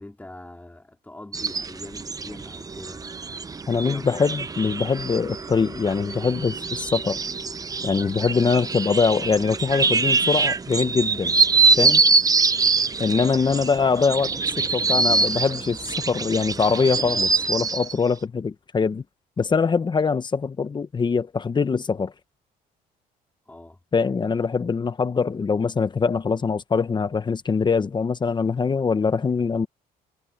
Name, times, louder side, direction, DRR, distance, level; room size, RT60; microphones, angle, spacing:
voice 1, 0.0-3.1 3.8-4.4 12.5-12.8 13.4-13.7 23.5-23.8, left 1 dB, 10° left, 3.4 m, -42 dB
sound 1, 1.3-17.9, right 4 dB, 20° right, 0.8 m, -24 dB
voice 2, 3.7-7.2 7.8-11.3 11.8-12.1 13.0-19.0 19.4-22.1 23.9-29.7, left 5 dB, 25° left, 1.1 m, -23 dB
cardioid pair, 110°, 17 cm